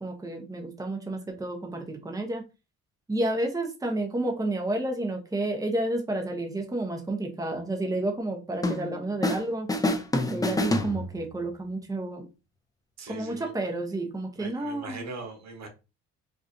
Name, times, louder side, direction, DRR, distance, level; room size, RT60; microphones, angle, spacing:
voice 1, 0.0-2.4 3.1-9.7 10.3-12.3 13.1-15.0, right 2 dB, 10° right, 0.9 m, -30 dB
sound 1, 8.6-9.4 9.7-11.5, left 1 dB, 10° left, 0.5 m, -27 dB
voice 2, 13.0-13.5 14.4-15.7, right 3 dB, 60° right, 1.1 m, -40 dB
4.7 x 2.5 x 2.7 m
cardioid pair, 90°, 30 cm